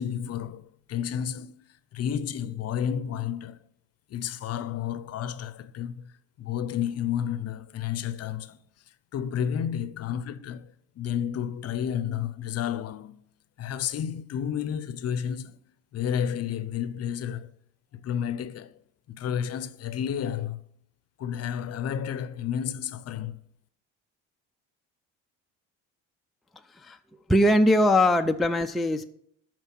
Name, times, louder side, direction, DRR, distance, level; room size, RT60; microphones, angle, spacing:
voice 1, 0.0-1.5 1.9-3.6 4.1-6.1 6.4-8.6 9.1-13.2 13.6-15.6 15.9-17.5 17.9-18.8 19.1-20.6 21.2-23.4, left 9 dB, 50° left, 0.7 m, -31 dB
voice 2, 27.3-29.0, left 1 dB, ahead, 0.4 m, -21 dB
13.0 x 4.6 x 6.0 m
cardioid pair, 105°, 33 cm